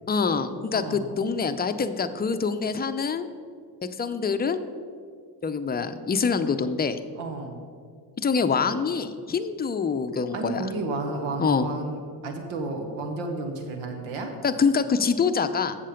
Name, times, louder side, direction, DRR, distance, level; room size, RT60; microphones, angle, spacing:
voice 1, 0.1-3.3 4.0-4.6 5.4-7.0 8.2-10.6 11.4-11.7 14.4-15.8, left 5 dB, 20° left, 9 dB, 0.5 m, -25 dB
voice 2, 0.7-1.0 7.2-7.6 10.3-14.3, right 2 dB, 90° right, 4 dB, 1.1 m, -32 dB
7.5 x 6.6 x 5.0 m, 2.1 s
supercardioid pair, 60°, 50 cm